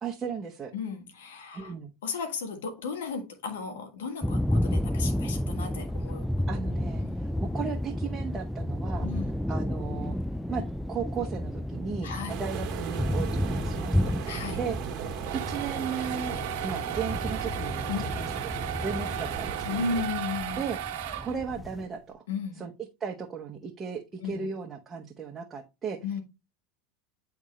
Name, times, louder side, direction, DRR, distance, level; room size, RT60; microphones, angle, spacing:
voice 1, 0.0-0.7 1.5-1.9 6.5-9.1 9.5-10.2 10.5-14.1 14.5-14.9 15.3-16.4 16.6-19.9 20.6-20.8 21.2-22.2 22.5-22.7 23.0-26.0, right 6 dB, 25° right, 1.1 m, -36 dB
voice 2, 0.7-1.7 2.0-6.2 7.0-7.3 9.0-9.4 12.0-12.3 14.3-14.6 17.9-18.2 19.7-20.6 22.3-22.6 24.2-24.5 26.0-26.2, left 5 dB, 85° left, 1.5 m, -34 dB
sound 1, 4.2-21.9, left 1 dB, ahead, 0.3 m, -32 dB
sound 2, 12.3-20.1, right 9 dB, 50° right, 1.4 m, -38 dB
sound 3, 15.0-21.7, right 11 dB, 65° right, 1.4 m, -36 dB
9.8 x 3.6 x 3.2 m
hypercardioid pair, 95°, 0 cm